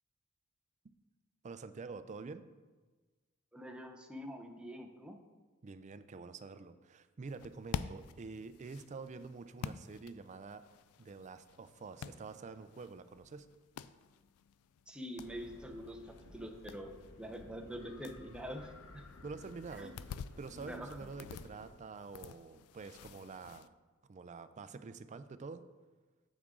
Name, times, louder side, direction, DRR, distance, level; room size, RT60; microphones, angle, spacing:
voice 1, 1.4-2.5 5.6-10.6 11.0-13.5 19.2-19.9 20.4-23.7 24.1-25.6, right 4 dB, 35° right, 11 dB, 0.4 m, -47 dB
voice 2, 3.5-5.2 14.9-16.9 17.2-19.0 19.7-19.9 20.5-21.0, equal, 5° right, 2 dB, 0.7 m, -45 dB
sound 1, 7.3-23.7, left 7 dB, 85° left, 0.3 m, -50 dB
sound 2, 15.2-21.7, left 2 dB, 60° left, 0.7 m, -56 dB
8.3 x 7.3 x 3.7 m, 1.3 s
head